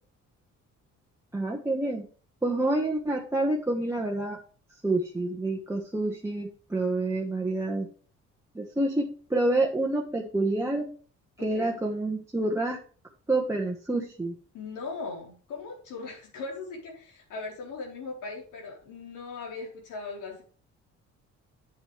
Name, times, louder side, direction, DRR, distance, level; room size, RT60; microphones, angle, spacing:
voice 1, 1.3-2.1 2.4-4.4 4.8-7.9 8.5-10.9 11.4-12.8 13.3-14.3, right 2 dB, 10° right, -2 dB, 1.4 m, -28 dB
voice 2, 11.4-11.7 14.5-20.4, left 4 dB, 90° left, -1 dB, 4.0 m, -39 dB
8.5 x 8.4 x 3.3 m, 0.41 s
cardioid pair, 90°, 30 cm